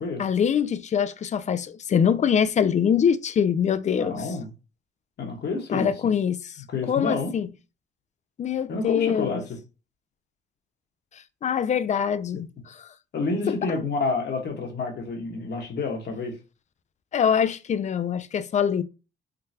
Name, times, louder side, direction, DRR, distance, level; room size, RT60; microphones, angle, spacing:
voice 1, 0.2-4.2 5.7-6.4 6.9-7.5 8.4-9.4 11.4-12.9 13.5-13.6 17.1-18.8, left 8 dB, 35° left, 0.4 m, -24 dB
voice 2, 4.0-4.5 5.2-6.1 6.7-7.3 8.7-9.6 13.1-16.4, left 3 dB, 55° left, 1.2 m, -29 dB
3.7 x 2.2 x 2.7 m
cardioid pair, 90°, 20 cm